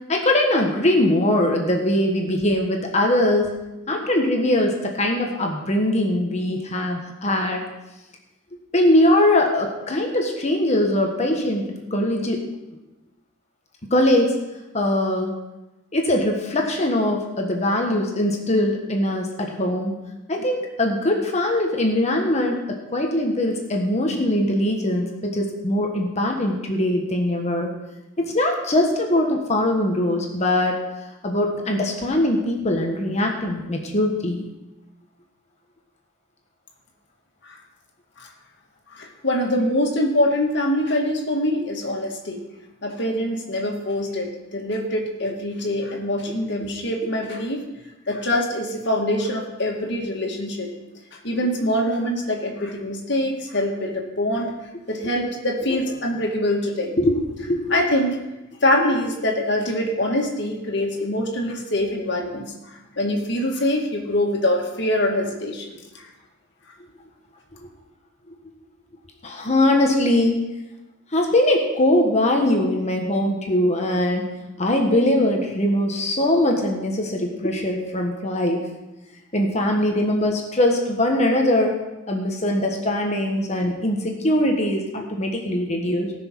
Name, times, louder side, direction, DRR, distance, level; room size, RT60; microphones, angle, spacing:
voice 1, 0.1-3.5 3.9-7.6 8.7-12.4 13.9-14.4 14.7-15.3 15.9-19.9 20.3-27.7 28.2-30.8 31.2-34.5 46.6-46.7 57.0-57.8 69.2-70.4 71.1-74.3 74.6-78.6 79.3-81.7 82.1-86.1, left 1 dB, 35° left, 2 dB, 1.4 m, -21 dB
voice 2, 38.9-42.4 42.8-47.6 48.1-50.7 51.2-54.6 54.9-56.9 57.7-58.2 58.6-62.5 63.0-66.1, left 1 dB, 60° left, 0 dB, 2.1 m, -24 dB
18.5 x 6.3 x 4.6 m, 1.0 s
head